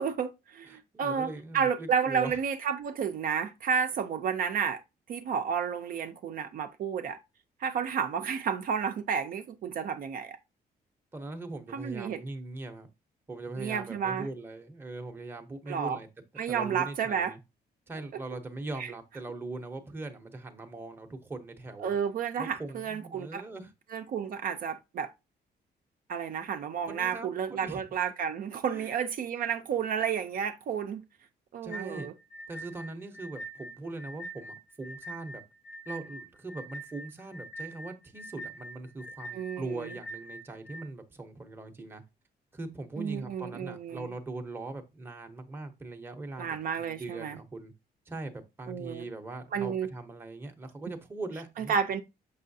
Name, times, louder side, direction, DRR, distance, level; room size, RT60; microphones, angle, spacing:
voice 1, 0.0-1.3 1.5-4.8 5.1-7.2 7.6-10.4 11.7-12.2 13.6-14.3 15.7-16.0 16.4-17.3 18.8-18.9 21.8-23.4 23.9-25.1 26.1-31.0 31.5-32.1 39.3-39.9 43.0-44.1 46.4-47.4 48.7-49.1 49.5-49.9 51.6-52.0, right 7 dB, 55° right, 0.5 m, -31 dB
voice 2, 0.7-2.4 11.1-12.9 13.3-16.1 16.5-17.4 17.9-21.9 22.4-23.7 26.9-27.8 28.7-29.0 31.6-32.1 32.5-35.4 35.9-42.0 42.5-47.7 48.1-51.7, right 2 dB, 15° right, 0.7 m, -41 dB
sound 1, 31.7-40.8, right 1 dB, 75° left, 0.7 m, -43 dB
6.6 x 5.4 x 2.6 m
cardioid pair, 180°, 17 cm